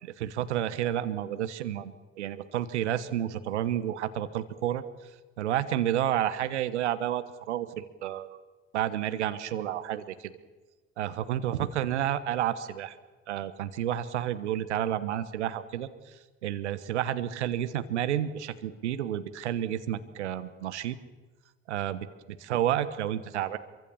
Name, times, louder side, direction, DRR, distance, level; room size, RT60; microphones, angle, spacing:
voice 1, 0.0-4.8 5.4-8.4 8.7-10.3 11.0-13.0 13.3-16.1 16.4-21.0 21.7-23.6, right 11 dB, 85° right, 13 dB, 1.3 m, -30 dB
26.5 x 24.0 x 7.2 m, 1.2 s
hypercardioid pair, 50°, 34 cm